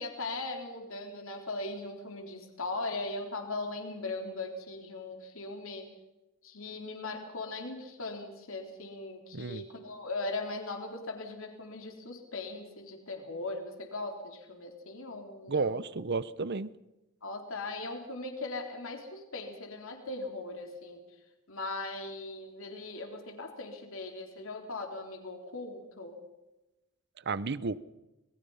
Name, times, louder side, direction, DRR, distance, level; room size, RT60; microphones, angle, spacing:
voice 1, 0.0-5.9 6.4-15.9 17.2-21.0 21.5-26.2, left 2 dB, 65° left, 4 dB, 3.7 m, -39 dB
voice 2, 9.3-9.6 15.5-16.7 27.2-27.8, right 4 dB, 50° right, 17 dB, 0.8 m, -32 dB
26.5 x 21.5 x 5.7 m, 1.0 s
head